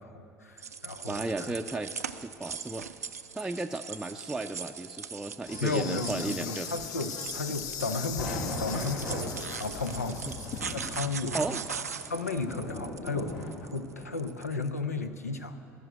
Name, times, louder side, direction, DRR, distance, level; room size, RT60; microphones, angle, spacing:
voice 1, 0.0-1.5 5.6-9.3 9.6-10.3 10.7-11.4 11.7-11.8 12.1-15.6, left 3 dB, 90° left, 9 dB, 0.6 m, -34 dB
sound 1, 0.6-14.7, right 6 dB, 90° right, 0.4 m, -40 dB
voice 2, 1.1-1.9 2.2-2.9 3.3-6.7 10.3-10.4 11.3-11.6, right 2 dB, 5° right, 3 dB, 0.5 m, -34 dB
Insect, 5.5-11.0, left 9 dB, 50° left, 0.6 m, -40 dB
sound 2, 7.8-14.0, left 1 dB, 65° left, 2.1 m, -39 dB
16.5 x 6.4 x 9.6 m, 2.8 s
figure-of-eight pair, 65°, 8 cm